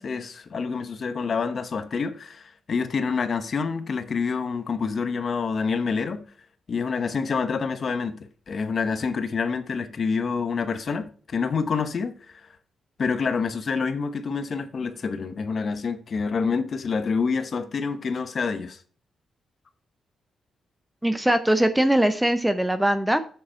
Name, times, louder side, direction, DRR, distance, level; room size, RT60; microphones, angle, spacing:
voice 1, 0.0-6.2 6.7-8.2 8.5-12.5 13.0-18.8, left 5 dB, 40° left, 0.8 m, -27 dB
voice 2, 21.0-23.2, right 1 dB, 5° right, 0.5 m, -21 dB
7.6 x 6.7 x 4.3 m
wide cardioid pair, 165°, 0 cm